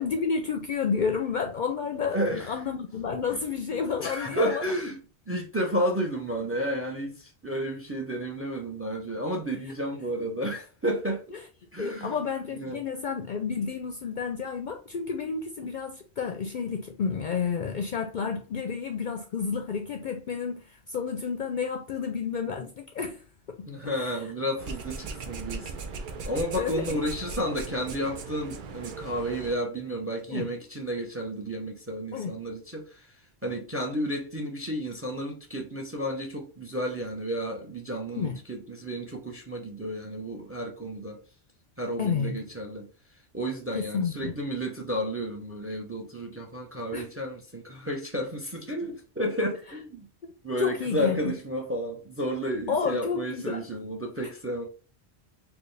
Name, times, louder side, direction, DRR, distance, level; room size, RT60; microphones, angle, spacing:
voice 1, 0.0-4.6 11.8-23.2 23.5-24.1 26.6-27.1 30.3-30.5 32.1-32.3 38.2-38.4 42.0-42.3 43.7-44.3 46.9-47.1 50.2-50.3 50.6-51.3 52.7-53.6, left 6 dB, 55° left, 0.6 m, -30 dB
voice 2, 2.1-2.5 4.0-5.0 5.3-11.2 11.7-12.2 12.5-12.8 23.7-25.9 26.3-33.2 33.4-41.2 41.8-42.9 43.3-50.1 50.4-54.6, equal, 15° right, 0.6 m, -32 dB
sound 1, 24.6-29.6, right 4 dB, 55° right, 0.6 m, -38 dB
4.4 x 2.2 x 3.2 m
omnidirectional pair, 1.1 m